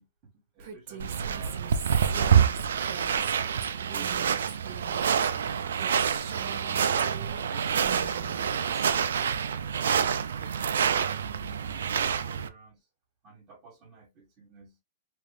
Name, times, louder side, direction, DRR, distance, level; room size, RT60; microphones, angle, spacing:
voice 1, 0.0-3.4 3.8-6.0 11.6-12.9 13.2-14.8, right 4 dB, 30° right, 1.4 m, -52 dB
Female speech woman speaking, 0.6-7.4 7.7-9.0, right 8 dB, 50° right, 0.9 m, -43 dB
sound 1, 1.0-12.5, right 7 dB, 90° right, 0.4 m, -27 dB
3.0 x 2.5 x 3.2 m
hypercardioid pair, 150°, 0 cm